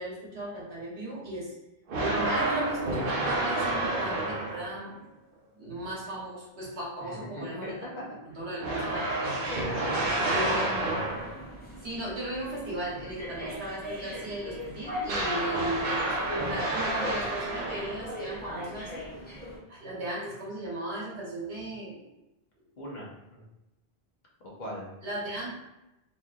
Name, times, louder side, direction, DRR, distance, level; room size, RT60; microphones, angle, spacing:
voice 1, 0.0-1.5 1.9-5.0 5.5-7.8 8.3-9.4 10.3-11.0 11.8-18.9 19.7-22.0 25.0-25.6, right 1 dB, 90° right, -6 dB, 1.3 m, -36 dB
sound 1, 1.9-4.9 8.6-11.5 15.1-18.2, right 2 dB, 65° right, 0.8 m, -29 dB
voice 2, 7.0-8.0 9.4-10.4 22.8-23.4 24.4-24.9, equal, 50° left, -3 dB, 0.9 m, -40 dB
sound 2, 10.7-19.6, left 1 dB, 10° left, 0.5 m, -40 dB
3.1 x 2.5 x 2.3 m, 0.93 s
omnidirectional pair, 1.1 m